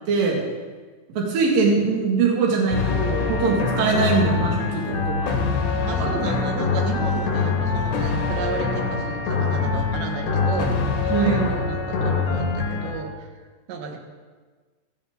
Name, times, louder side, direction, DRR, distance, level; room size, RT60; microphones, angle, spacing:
voice 1, 0.1-0.4 1.1-5.3 6.0-6.4 11.1-11.4, right 4 dB, 55° right, -2 dB, 3.5 m, -22 dB
sound 1, 2.7-12.9, left 4 dB, 75° left, 4.1 m, -24 dB
voice 2, 5.8-10.7 11.0-13.3 13.7-14.0, right 5 dB, 80° right, 3 dB, 3.6 m, -32 dB
15.5 x 13.0 x 3.8 m, 1.4 s
omnidirectional pair, 5.1 m